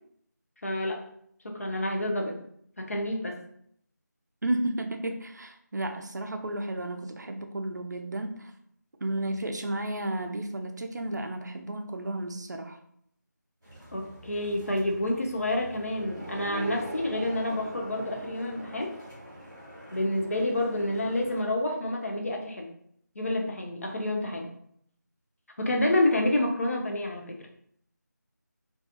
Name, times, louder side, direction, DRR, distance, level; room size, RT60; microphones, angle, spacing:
voice 1, 0.6-1.0 1.4-2.4 2.8-3.4 13.9-18.9 19.9-22.7 23.2-24.5 25.6-27.4, left 1 dB, 50° left, 1 dB, 0.5 m, -28 dB
voice 2, 4.4-8.5 9.0-12.8, right 1 dB, 65° right, 5 dB, 0.4 m, -33 dB
sound 1, 13.6-21.4, equal, 5° right, 0.5 m, -42 dB
2.4 x 2.3 x 2.6 m, 0.69 s
figure-of-eight pair, 165°, 10 cm